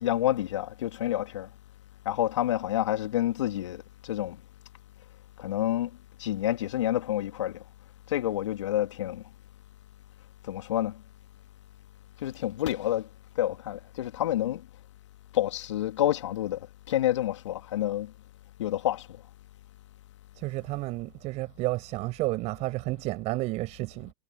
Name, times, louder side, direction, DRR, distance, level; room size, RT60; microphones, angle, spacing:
voice 1, 0.0-1.5 2.0-4.4 5.4-5.9 6.2-7.6 8.1-9.2 10.5-11.0 12.2-13.1 13.4-14.6 15.3-16.6 16.9-18.1 18.6-19.1, left 13 dB, 75° left, 2.7 m, -28 dB
voice 2, 20.3-24.1, right 20 dB, 45° right, 7.7 m, -31 dB
hypercardioid pair, 110°, 16 cm